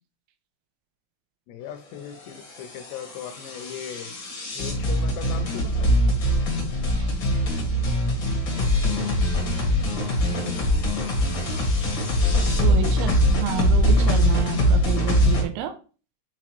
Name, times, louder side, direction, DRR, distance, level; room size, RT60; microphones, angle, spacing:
voice 1, 1.5-4.1 4.5-5.9 12.5-12.8, left 8 dB, 80° left, 8 dB, 2.6 m, -38 dB
sound 1, 2.2-15.4, equal, 60° left, 1.2 m, -23 dB
sound 2, 6.1-12.0 12.3-14.7, left 2 dB, 35° left, 1.4 m, -32 dB
voice 2, 12.6-15.7, right 11 dB, 90° right, 8 dB, 3.1 m, -30 dB
8.8 x 4.1 x 3.0 m, 0.36 s
omnidirectional pair, 5.2 m